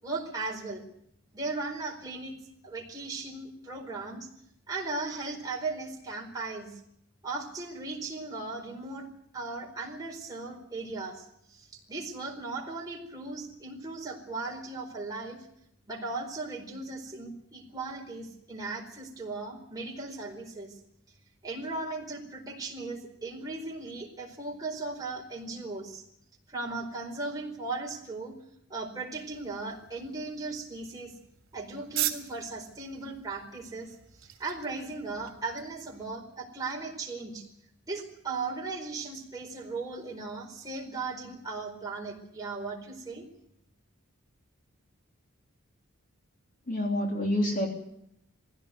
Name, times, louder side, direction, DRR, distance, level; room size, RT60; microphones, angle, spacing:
voice 1, 0.0-0.8 1.3-2.3 2.6-4.3 4.7-6.8 7.2-9.1 9.3-15.5 15.9-20.7 21.4-26.0 26.5-28.3 28.7-31.1 31.5-37.4 37.9-43.3, right 3 dB, 15° right, -2 dB, 4.5 m, -37 dB
sound 1, 29.1-36.2, right 13 dB, 65° right, 2.8 m, -40 dB
voice 2, 46.7-47.7, left 1 dB, 35° left, 1 dB, 3.2 m, -27 dB
20.5 x 16.5 x 9.4 m, 0.74 s
head